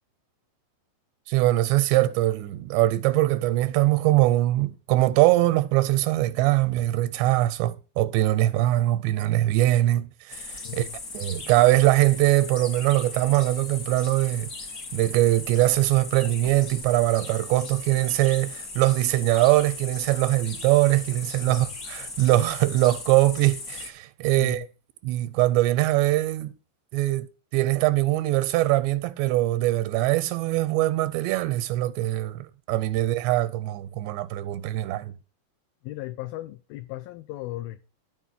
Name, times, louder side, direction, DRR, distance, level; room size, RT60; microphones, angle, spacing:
voice 1, 1.3-10.9 11.1-14.5 14.9-24.7 25.0-26.5 26.9-27.3 27.5-35.2, right 16 dB, 85° right, 3.0 m, -22 dB
sound 1, 10.3-23.9, left 3 dB, 45° left, 1.1 m, -38 dB
voice 2, 10.6-11.0 21.5-21.7 24.4-24.7 35.8-37.8, left 17 dB, 80° left, 2.2 m, -36 dB
12.5 x 4.6 x 8.2 m
omnidirectional pair, 4.9 m